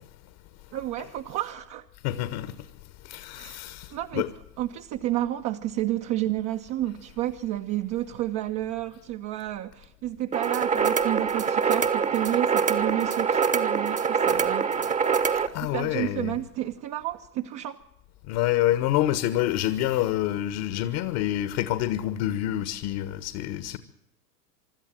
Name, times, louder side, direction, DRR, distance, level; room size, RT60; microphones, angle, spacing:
voice 1, 0.7-1.9 3.3-3.6 3.9-4.2 4.6-15.0 15.6-17.8, right 14 dB, 35° right, 1.1 m, -31 dB
voice 2, 2.0-2.5 3.0-4.3 15.5-16.4 18.3-23.8, left 13 dB, 45° left, 1.6 m, -27 dB
sound 1, 10.3-15.5, right 6 dB, 15° right, 1.3 m, -24 dB
25.5 x 13.0 x 9.1 m
hypercardioid pair, 105°, 50 cm